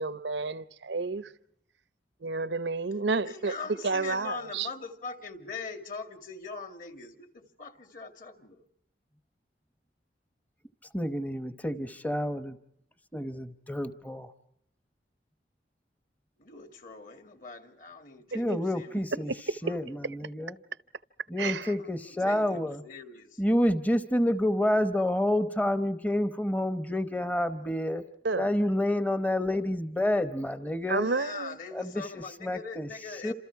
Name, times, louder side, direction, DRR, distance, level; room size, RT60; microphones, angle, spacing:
voice 1, 0.0-1.2 2.2-3.5 3.8-4.7 18.5-18.6 21.4-21.7 28.2-28.5 30.9-31.6, right 3 dB, 85° right, 0.9 m, -30 dB
voice 2, 3.2-8.6 16.4-19.4 19.6-19.8 21.5-23.4 31.0-33.3, left 4 dB, 50° left, 2.3 m, -42 dB
voice 3, 10.9-12.6 13.1-14.3 18.3-19.3 19.6-20.5 21.3-22.8 23.4-28.0 28.4-31.1 31.7-32.9 33.2-33.3, left 1 dB, 10° left, 0.9 m, -28 dB
29.0 x 27.0 x 4.7 m
head